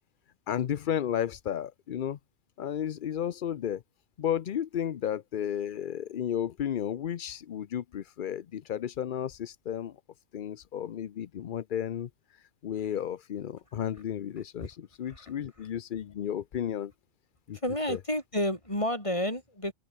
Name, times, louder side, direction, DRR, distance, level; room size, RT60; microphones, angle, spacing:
voice 1, 0.5-2.2 2.6-3.8 4.2-10.0 10.3-16.9 17.5-17.6 17.9-18.0, left 9 dB, 55° left, 0.6 m, -33 dB
voice 2, 17.6-19.7, left 1 dB, 25° left, 6.2 m, -30 dB
open air
omnidirectional pair, 1.4 m